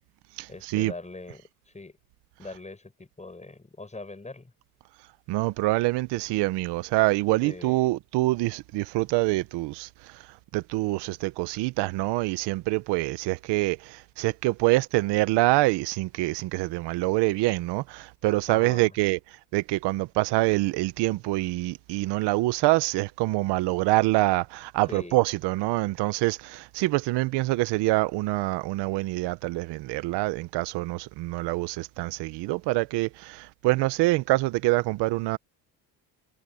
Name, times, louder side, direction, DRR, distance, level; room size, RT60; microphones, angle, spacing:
voice 1, 0.5-1.5 1.7-2.0 2.4-4.5 7.4-7.8 18.5-19.0 24.9-25.2, left 3 dB, 15° left, 7.8 m, -41 dB
voice 2, 5.3-9.9 10.5-19.2 19.5-35.4, right 20 dB, 85° right, 1.0 m, -25 dB
supercardioid pair, 85°, 40 cm